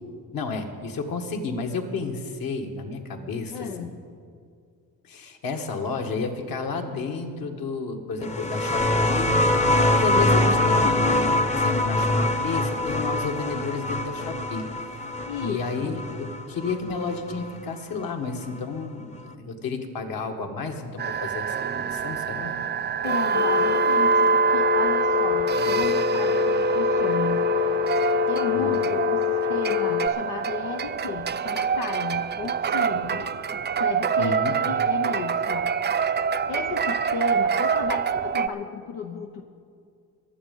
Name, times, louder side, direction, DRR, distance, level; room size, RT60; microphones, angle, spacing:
voice 1, 0.3-3.9 5.0-9.4 9.9-15.0 15.4-22.6 28.5-28.8 34.2-34.6, left 4 dB, 60° left, 4 dB, 1.8 m, -31 dB
voice 2, 3.5-3.9 15.2-16.0 23.0-27.4 28.3-33.3 33.8-35.7 36.5-39.4, left 6 dB, 90° left, 4 dB, 0.9 m, -34 dB
sound 1, 8.2-17.5 18.6-18.7, left 1 dB, 15° left, 0.8 m, -24 dB
sound 2, 21.0-38.5, right 6 dB, 25° right, 0.5 m, -25 dB
Telephone, 23.3-30.1, left 14 dB, 45° left, 0.5 m, -25 dB
22.0 x 7.8 x 5.5 m, 2.3 s
cardioid pair, 85°, 39 cm